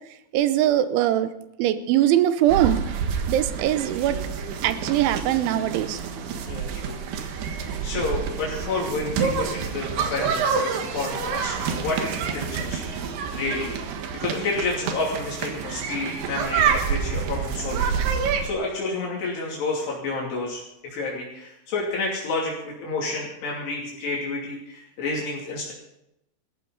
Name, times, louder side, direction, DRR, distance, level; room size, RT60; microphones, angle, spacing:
voice 1, 0.3-1.3 1.6-2.8 3.3-4.2 4.6-6.0, right 12 dB, 85° right, 11 dB, 3.4 m, -21 dB
sound 1, 2.5-18.5, right 6 dB, 65° right, 3.3 m, -28 dB
voice 2, 6.5-13.9 14.2-17.9 18.4-25.7, left 3 dB, 65° left, -4 dB, 4.8 m, -30 dB
21.0 x 15.0 x 4.0 m, 0.84 s
omnidirectional pair, 5.3 m